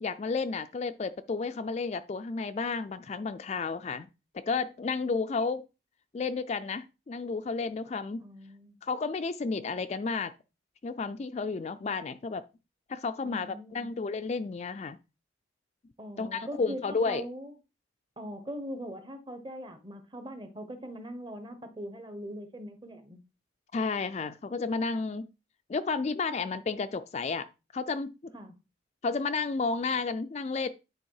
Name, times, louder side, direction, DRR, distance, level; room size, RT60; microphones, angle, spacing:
voice 1, 0.0-4.1 4.3-5.7 6.1-8.2 8.8-10.3 10.8-12.4 12.9-15.0 16.2-17.3 23.7-25.3 25.7-27.5 27.7-28.3 29.0-30.7, left 4 dB, 35° left, 0.3 m, -32 dB
voice 2, 8.2-8.8 13.2-13.9 16.0-17.5 18.2-23.2 28.3-28.5, equal, 25° right, 0.9 m, -41 dB
9.7 x 3.5 x 4.7 m
head